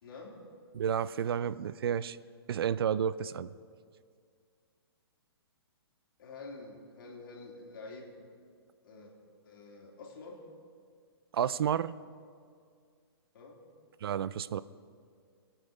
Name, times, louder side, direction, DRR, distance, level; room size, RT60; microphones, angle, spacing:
voice 1, 0.0-0.4 6.2-8.3 8.8-9.1 9.4-10.4 13.3-13.6, left 3 dB, 55° left, -2 dB, 3.4 m, -48 dB
voice 2, 0.8-2.2 2.5-3.5 11.3-11.9 14.0-14.6, right 8 dB, 65° right, 17 dB, 0.4 m, -31 dB
23.5 x 8.8 x 5.1 m, 2.1 s
hypercardioid pair, 165°, 13 cm